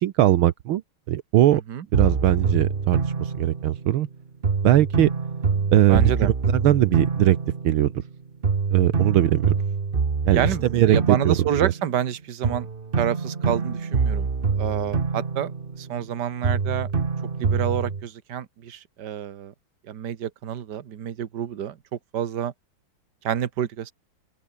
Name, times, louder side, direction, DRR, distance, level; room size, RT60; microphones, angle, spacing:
voice 1, 0.0-0.8 1.1-1.6 1.9-4.1 4.6-5.1 5.7-7.4 7.6-7.9 8.7-9.5 10.3-10.5 10.7-11.7, right 13 dB, 75° right, 1.7 m, -20 dB
sound 1, 1.9-4.1 4.4-8.1 8.4-12.1 12.4-16.1 16.4-18.0, right 5 dB, 30° right, 1.3 m, -26 dB
voice 2, 5.9-6.3 10.3-12.7 13.0-14.3 14.6-15.5 15.8-16.9 17.4-19.5 19.9-21.8 22.1-22.5 23.2-23.9, right 10 dB, 55° right, 1.8 m, -28 dB
open air
omnidirectional pair, 2.4 m